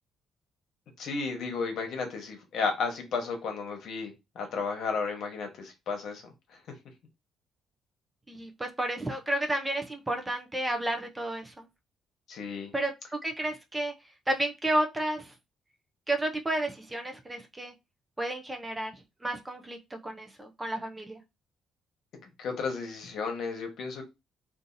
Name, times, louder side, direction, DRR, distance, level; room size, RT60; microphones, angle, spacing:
voice 1, 1.0-6.3 12.3-12.7 22.4-24.0, left 4 dB, 60° left, 1.0 m, -33 dB
voice 2, 8.3-11.6 12.7-12.9 13.2-13.9 14.3-15.3 16.1-17.7 18.2-18.9 19.2-21.2, right 1 dB, 10° right, 0.4 m, -31 dB
2.7 x 2.5 x 3.8 m
cardioid pair, 165°, 0 cm